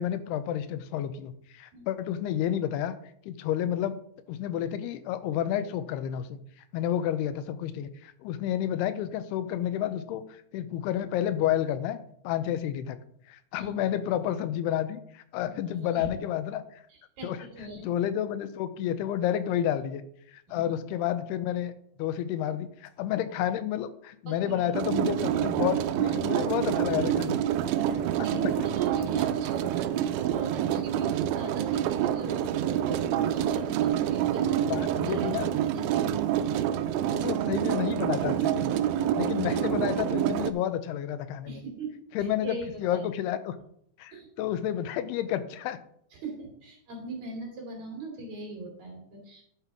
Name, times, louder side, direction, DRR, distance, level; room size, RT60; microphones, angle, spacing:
voice 1, 0.0-3.0 3.3-4.0 4.3-6.4 6.7-12.0 12.2-13.0 13.3-16.8 17.2-17.4 17.8-20.0 20.3-21.7 22.0-27.5 28.3-28.5 34.7-35.5 37.1-38.7 39.1-41.6 42.2-43.6 44.0-45.8, left 11 dB, 85° left, 12 dB, 2.7 m, -30 dB
voice 2, 15.4-16.1 16.9-17.9 20.5-20.6 24.3-24.7 27.9-35.3 35.6-36.3 41.5-41.9 42.2-43.0 44.1-44.3 46.1-49.4, right 3 dB, 50° right, 0 dB, 3.5 m, -40 dB
sound 1, 24.7-40.5, right 10 dB, 80° right, 2.3 m, -27 dB
11.5 x 5.4 x 4.7 m, 0.69 s
omnidirectional pair, 4.5 m